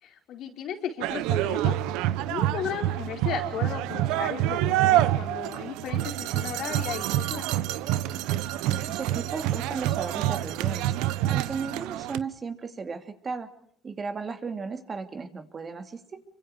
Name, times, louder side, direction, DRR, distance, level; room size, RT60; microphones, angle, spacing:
voice 1, 0.0-1.8 2.3-7.5, left 8 dB, 65° left, 4 dB, 4.3 m, -35 dB
sound 1, 1.0-12.2, right 13 dB, 85° right, 0.9 m, -27 dB
sound 2, 4.9-12.3, right 10 dB, 65° right, 2.3 m, -50 dB
voice 2, 8.7-10.9 11.3-13.5 13.8-16.2, right 5 dB, 35° right, 7 dB, 2.8 m, -35 dB
27.0 x 24.5 x 4.9 m, 0.63 s
supercardioid pair, 85°, 0 cm